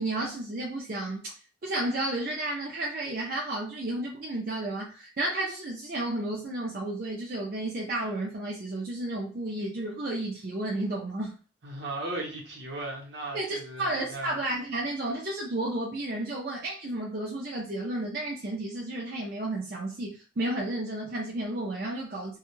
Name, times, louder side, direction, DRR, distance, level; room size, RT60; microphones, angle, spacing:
voice 1, 0.0-1.3 1.6-11.4 13.3-22.4, right 1 dB, 50° right, 0.5 m, -32 dB
voice 2, 11.6-14.4, right 2 dB, 70° right, 0.9 m, -37 dB
2.3 x 2.1 x 3.0 m
head